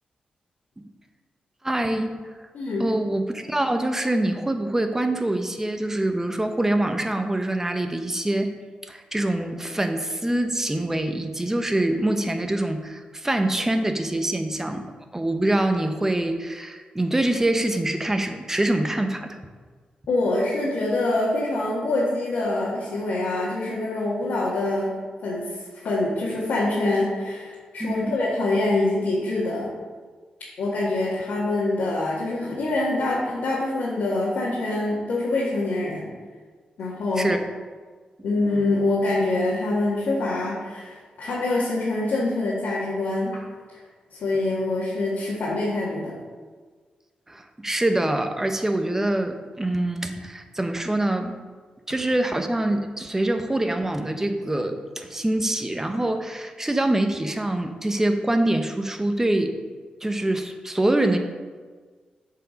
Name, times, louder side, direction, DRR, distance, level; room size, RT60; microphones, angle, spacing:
voice 1, 1.6-2.1 2.8-8.5 8.8-14.9 15.1-19.4 27.8-28.1 37.2-37.4 47.3-51.4 51.9-59.5 60.0-61.2, right 1 dB, 15° right, 6 dB, 0.8 m, -25 dB
voice 2, 2.5-2.8 20.1-24.9 25.2-25.5 25.8-29.7 30.6-36.1 36.8-37.3 38.2-43.4 44.1-46.1, left 2 dB, 85° left, -8 dB, 1.7 m, -25 dB
7.5 x 4.8 x 5.1 m, 1.5 s
cardioid pair, 70°, 3 cm